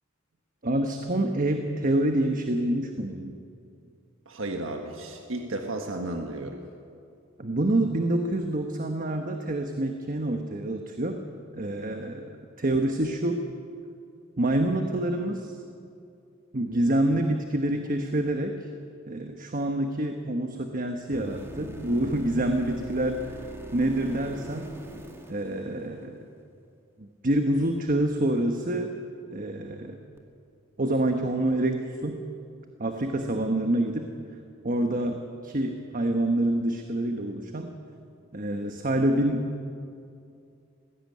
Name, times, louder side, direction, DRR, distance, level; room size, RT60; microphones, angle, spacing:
voice 1, 0.6-3.3 7.4-11.2 11.5-13.4 14.4-15.6 16.5-18.6 19.1-23.4 23.7-24.7 25.3-26.1 27.0-28.9 29.3-30.0 30.8-32.2 32.8-34.1 34.6-37.7 38.3-39.5, right 1 dB, 40° right, 5 dB, 1.2 m, -27 dB
voice 2, 4.2-6.6, right 2 dB, 70° right, 3 dB, 1.5 m, -33 dB
sound 1, 21.1-26.2 30.2-30.3, right 2 dB, 10° right, 2.1 m, -41 dB
20.0 x 16.5 x 9.4 m, 2.5 s
head